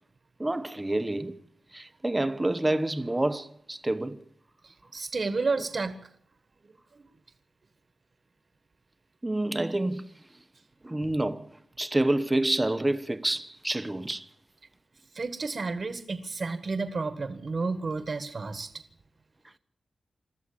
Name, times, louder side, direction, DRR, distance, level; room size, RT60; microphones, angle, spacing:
voice 1, 0.4-1.4 1.7-4.2 9.2-10.1 10.8-14.3, right 1 dB, 15° right, 1.0 m, -28 dB
voice 2, 4.6-6.0 15.1-18.7, right 4 dB, 55° right, 1.5 m, -31 dB
22.5 x 14.0 x 8.6 m
wide cardioid pair, 100°, 0 cm